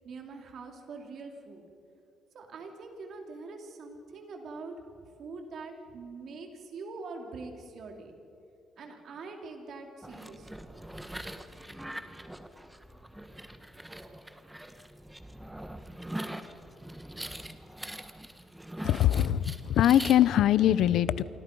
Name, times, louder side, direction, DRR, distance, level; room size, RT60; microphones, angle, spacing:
voice 1, 0.0-1.6 2.3-4.8 5.2-8.1 8.8-10.6, right 3 dB, 65° right, 3 dB, 3.4 m, -43 dB
sound 1, 10.0-20.2, right 1 dB, 5° right, 1.5 m, -42 dB
voice 2, 18.8-21.2, left 11 dB, 80° left, 17 dB, 0.7 m, -23 dB
28.0 x 25.0 x 5.5 m, 2.8 s
cardioid pair, 90°, 0 cm